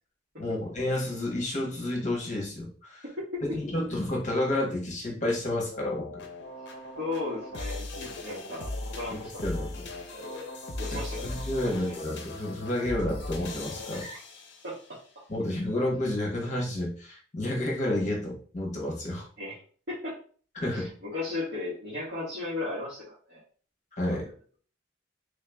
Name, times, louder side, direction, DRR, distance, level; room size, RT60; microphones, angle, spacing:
voice 1, 0.4-3.0 3.4-6.3 9.4-9.8 10.9-14.0 15.3-19.3 20.6-20.9 23.9-24.3, left 1 dB, 40° left, -1 dB, 1.2 m, -30 dB
sound 1, 5.7-14.9, left 2 dB, 60° left, 0.6 m, -38 dB
voice 2, 7.0-9.8 10.1-10.5 10.8-11.3 11.6-12.0 14.0-14.2 14.6-15.2 19.4-19.6 19.9-20.2 20.7-23.4 24.1-24.3, left 2 dB, 55° right, -10 dB, 1.5 m, -36 dB
3.4 x 2.8 x 3.4 m, 0.42 s
head